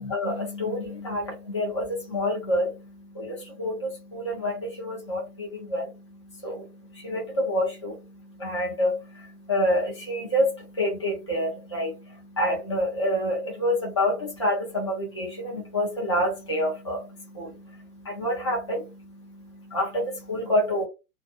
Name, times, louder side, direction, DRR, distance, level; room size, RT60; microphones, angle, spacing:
voice 1, 0.0-20.9, left 1 dB, 20° left, 0.3 m, -28 dB
2.4 x 2.3 x 2.4 m
figure-of-eight pair, 115°, 47 cm